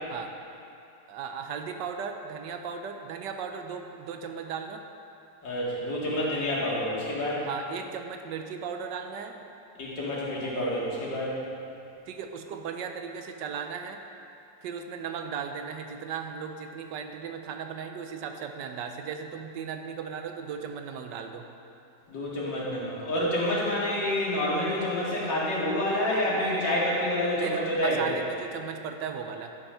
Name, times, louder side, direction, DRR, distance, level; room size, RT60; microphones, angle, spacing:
voice 1, 1.1-4.8 7.4-9.4 12.1-14.0 14.6-21.4 27.4-29.5, right 6 dB, 75° right, 5 dB, 1.3 m, -36 dB
voice 2, 5.4-7.4 9.8-11.3 22.1-28.1, left 1 dB, 75° left, -7 dB, 2.7 m, -28 dB
11.0 x 5.7 x 5.6 m, 2.6 s
omnidirectional pair, 2.0 m